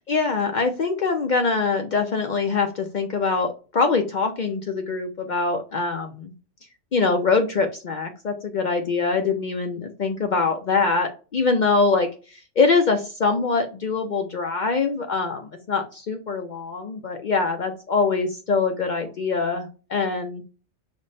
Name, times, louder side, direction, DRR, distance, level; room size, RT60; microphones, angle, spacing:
voice 1, 0.1-6.3 6.9-20.4, left 4 dB, 60° left, 4 dB, 0.5 m, -23 dB
5.1 x 2.1 x 4.0 m, 0.35 s
omnidirectional pair, 1.3 m